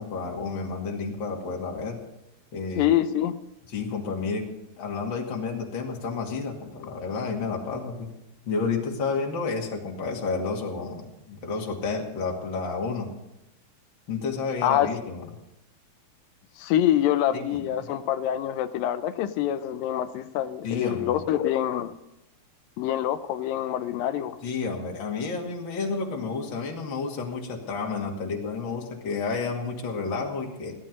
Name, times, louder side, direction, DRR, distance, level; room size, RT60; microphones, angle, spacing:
voice 1, 0.0-2.0 2.5-2.9 3.7-4.5 4.8-8.1 8.5-13.1 14.1-15.2 17.5-17.6 20.6-21.2 24.4-30.8, left 4 dB, 35° left, 0 dB, 2.6 m, -30 dB
voice 2, 2.8-3.4 14.6-14.9 16.6-21.9 22.8-24.4, left 11 dB, 80° left, 12 dB, 2.4 m, -25 dB
17.0 x 12.5 x 5.3 m, 0.91 s
omnidirectional pair, 4.1 m